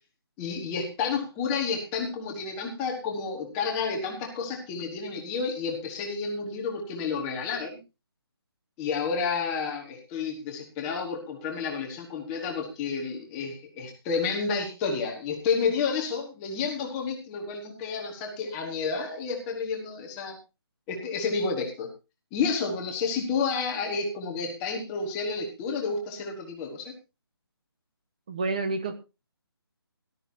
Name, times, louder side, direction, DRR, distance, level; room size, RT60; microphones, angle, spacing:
voice 1, 0.4-7.8 8.8-20.4 20.9-21.9 22.3-26.9, left 5 dB, 5° left, 1 dB, 1.4 m, -30 dB
voice 2, 28.3-29.0, right 3 dB, 15° right, 9 dB, 1.0 m, -29 dB
18.0 x 12.5 x 2.7 m, 0.28 s
hypercardioid pair, 180°, 13 cm